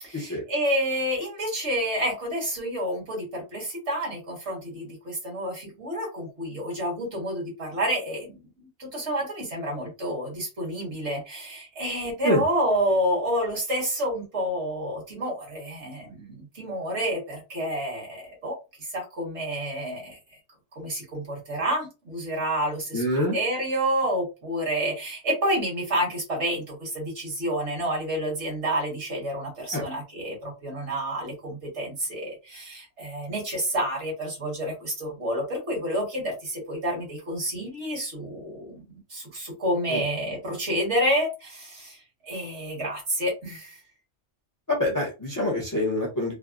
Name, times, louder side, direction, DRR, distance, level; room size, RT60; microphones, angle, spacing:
voice 1, 0.0-8.5 8.8-20.2 20.8-43.8, equal, 70° right, -2 dB, 1.8 m, -29 dB
voice 2, 22.9-23.4 29.7-29.8 39.9-40.0 44.7-46.3, left 1 dB, 20° left, -2 dB, 0.7 m, -25 dB
3.4 x 2.1 x 2.4 m, 0.29 s
omnidirectional pair, 1.2 m